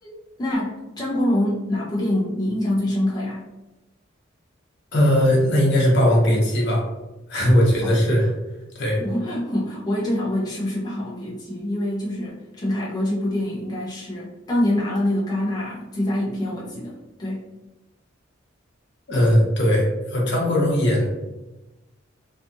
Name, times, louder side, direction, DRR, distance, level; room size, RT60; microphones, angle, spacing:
voice 1, 0.0-3.4 7.8-7.9 9.0-17.4, left 1 dB, 20° left, -6 dB, 0.5 m, -25 dB
voice 2, 4.9-6.8 7.3-8.3 8.7-9.0 19.1-21.1, equal, 60° left, -2 dB, 0.8 m, -19 dB
2.6 x 2.3 x 2.6 m, 1.1 s
head